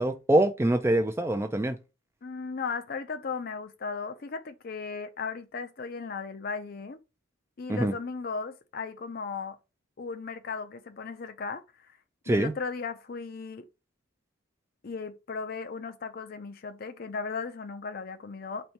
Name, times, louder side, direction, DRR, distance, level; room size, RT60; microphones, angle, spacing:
voice 1, 0.0-1.8 7.7-7.9 12.3-12.5, right 1 dB, 10° right, 0.3 m, -24 dB
voice 2, 2.2-7.0 7.6-9.6 10.0-11.9 12.3-13.7 14.8-18.7, left 4 dB, 45° left, 0.5 m, -36 dB
4.2 x 2.7 x 3.2 m
head